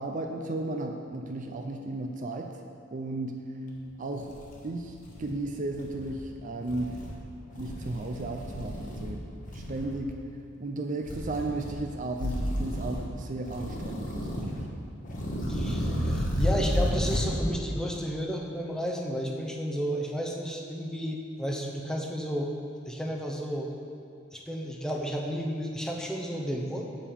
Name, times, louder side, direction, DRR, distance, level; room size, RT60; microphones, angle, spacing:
voice 1, 0.0-2.5 2.9-3.5 4.0-4.4 4.6-4.9 5.2-6.9 7.6-9.2 9.5-10.2 10.6-14.6 19.3-19.4, right 2 dB, 40° right, 3 dB, 0.5 m, -34 dB
sound 1, 3.8-3.9 4.2-5.3 5.7-6.2 6.6-7.2 7.5-9.1 9.4-10.0 11.0-11.8 12.1-13.1 13.4-14.6 15.0-17.4, equal, 40° left, 1.2 m, -32 dB
voice 2, 15.5-22.5 22.9-23.7 24.3-26.9, equal, 5° left, 0 dB, 0.7 m, -32 dB
7.4 x 6.9 x 5.2 m, 2.5 s
head